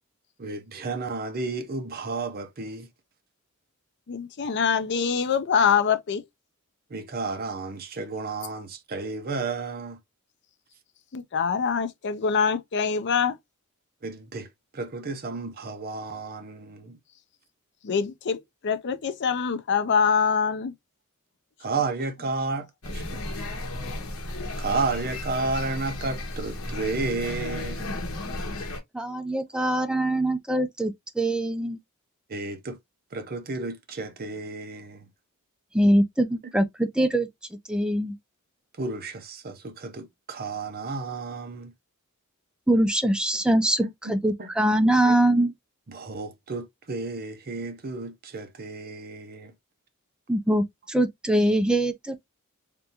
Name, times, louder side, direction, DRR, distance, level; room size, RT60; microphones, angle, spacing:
voice 1, 0.4-2.9 6.9-10.0 14.0-17.0 21.6-23.4 24.6-27.9 32.3-32.8 33.1-35.1 38.8-41.7 43.8-44.1 44.4-44.5 45.0-45.2 45.9-49.5, right 3 dB, 40° right, 0.6 m, -32 dB
voice 2, 4.1-6.2 11.1-13.4 17.8-20.7, left 6 dB, 50° left, 0.5 m, -24 dB
sound 1, 22.8-28.8, left 1 dB, 70° left, 1.0 m, -34 dB
voice 3, 28.9-31.8 35.7-37.3 37.7-38.2 42.7-45.5 50.3-52.2, right 1 dB, 5° right, 0.4 m, -23 dB
3.4 x 2.6 x 2.8 m
head